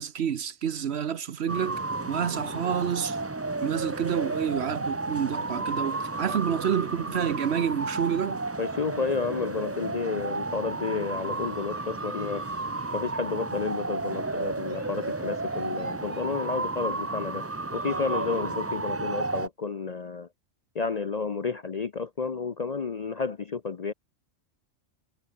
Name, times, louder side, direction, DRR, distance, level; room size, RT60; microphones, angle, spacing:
voice 1, 0.0-3.2 3.6-8.4, right 8 dB, 60° right, 1.0 m, -29 dB
sound 1, 1.5-19.5, right 3 dB, 20° right, 0.4 m, -32 dB
voice 2, 8.6-12.5 12.9-17.4 17.7-20.3 20.7-23.9, left 5 dB, 40° left, 0.6 m, -31 dB
sound 2, 11.1-16.6, right 3 dB, 80° right, 3.6 m, -56 dB
omnidirectional pair, 1.3 m